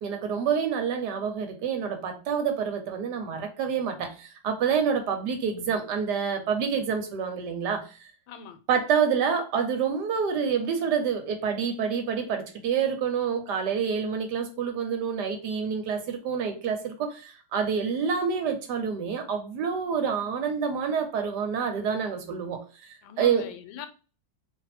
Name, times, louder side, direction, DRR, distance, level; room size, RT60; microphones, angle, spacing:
voice 1, 0.0-8.1 8.7-23.5, right 6 dB, 70° right, 1.3 m, -28 dB
voice 2, 8.3-8.6 23.0-23.9, left 8 dB, 85° left, 1.3 m, -41 dB
2.8 x 2.7 x 4.1 m
omnidirectional pair, 2.0 m